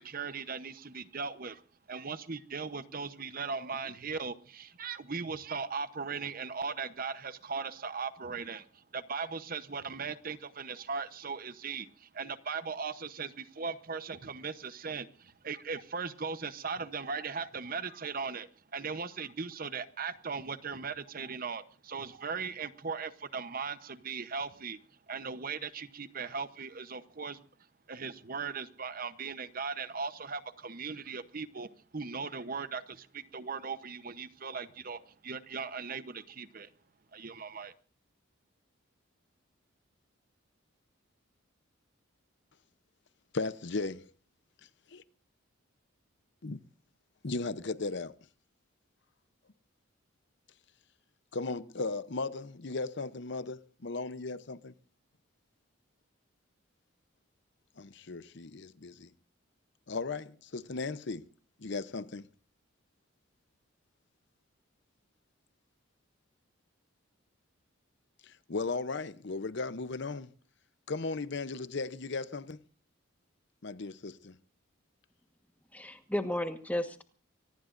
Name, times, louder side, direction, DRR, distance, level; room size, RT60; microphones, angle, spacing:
voice 1, 0.0-1.6 1.9-24.8 25.1-27.4 27.9-36.7 37.1-37.7, right 5 dB, 45° right, 0.8 m, -38 dB
voice 2, 43.3-44.1 46.4-46.6 47.2-48.2 51.3-54.7 57.8-59.1 59.9-61.3 61.6-62.3 68.2-70.3 70.9-72.6 73.6-74.4, left 3 dB, 55° left, 0.7 m, -36 dB
voice 3, 75.7-77.0, left 1 dB, 5° left, 1.3 m, -33 dB
25.0 x 19.0 x 2.6 m
head